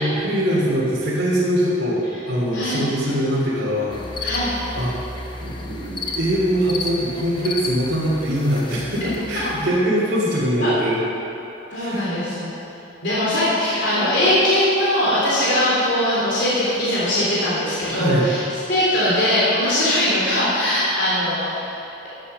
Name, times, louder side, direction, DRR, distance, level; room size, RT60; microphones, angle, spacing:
voice 1, 0.0-4.0 4.7-4.9 5.4-11.0 11.7-12.0 17.9-18.3, equal, 50° right, -9 dB, 3.1 m, -22 dB
voice 2, 2.5-2.8 4.2-4.6 10.6-10.7 11.7-12.5 13.0-18.4 18.7-22.1, left 1 dB, 60° left, -9 dB, 3.3 m, -21 dB
sound 1, 3.9-9.6, left 3 dB, 25° left, 0.9 m, -32 dB
12.5 x 9.0 x 6.8 m, 2.9 s
head